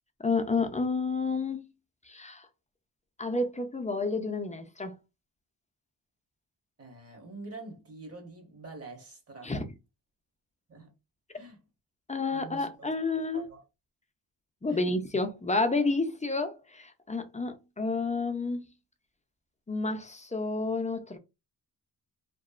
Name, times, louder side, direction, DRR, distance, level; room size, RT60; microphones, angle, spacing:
voice 1, 0.2-1.7 2.1-2.5 3.2-4.9 9.4-9.6 12.1-13.4 14.6-18.6 19.7-21.2, left 3 dB, 20° left, 0.3 m, -30 dB
voice 2, 6.8-9.5 10.7-10.9 11.3-11.6 12.3-12.9 13.1-13.6 14.7-14.9, right 3 dB, 35° right, 1.0 m, -46 dB
2.8 x 2.0 x 2.4 m
wide cardioid pair, 95°, 43 cm